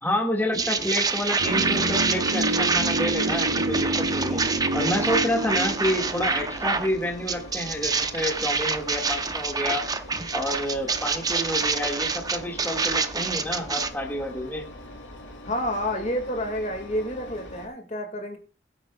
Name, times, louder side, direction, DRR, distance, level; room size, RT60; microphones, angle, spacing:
voice 1, 0.0-4.4 4.7-9.9 10.3-14.6, left 1 dB, 10° left, -1 dB, 1.8 m, -29 dB
sound 1, 0.5-6.9 7.3-13.9, right 4 dB, 20° right, 0.7 m, -27 dB
Engine, 0.7-17.7, left 1 dB, 80° left, 2.4 m, -43 dB
sound 2, 1.4-7.4 7.7-7.8, right 1 dB, 75° right, 1.8 m, -29 dB
voice 2, 15.5-18.4, equal, 40° left, 4 dB, 1.9 m, -29 dB
21.0 x 8.6 x 2.3 m, 0.34 s
head